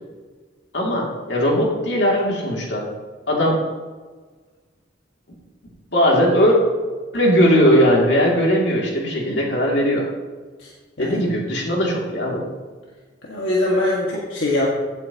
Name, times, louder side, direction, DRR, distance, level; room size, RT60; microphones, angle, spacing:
voice 1, 0.7-2.9 3.3-3.6 5.9-6.6 7.1-10.1 11.0-12.5, equal, 65° left, -2 dB, 2.6 m, -18 dB
voice 2, 13.2-14.7, left 1 dB, 85° left, -4 dB, 1.8 m, -22 dB
16.0 x 8.9 x 2.9 m, 1.4 s
head